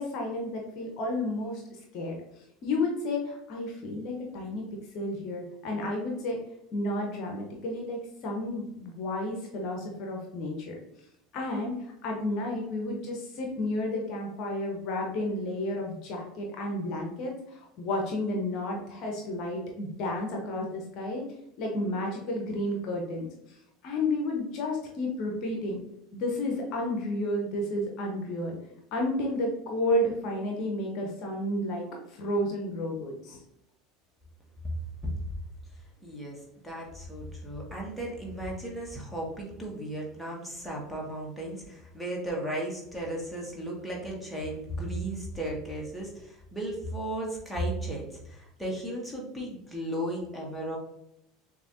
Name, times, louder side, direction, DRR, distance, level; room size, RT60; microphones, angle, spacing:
voice 1, 0.0-1.6 1.9-2.2 2.6-4.6 4.9-6.4 6.7-10.7 11.3-21.3 21.6-23.6 23.8-25.8 26.1-28.6 28.9-33.4, left 1 dB, 45° left, 1 dB, 0.9 m, -31 dB
voice 2, 36.0-50.8, right 1 dB, ahead, -3 dB, 1.4 m, -35 dB
6.7 x 2.7 x 2.6 m, 0.81 s
figure-of-eight pair, 75°, 0 cm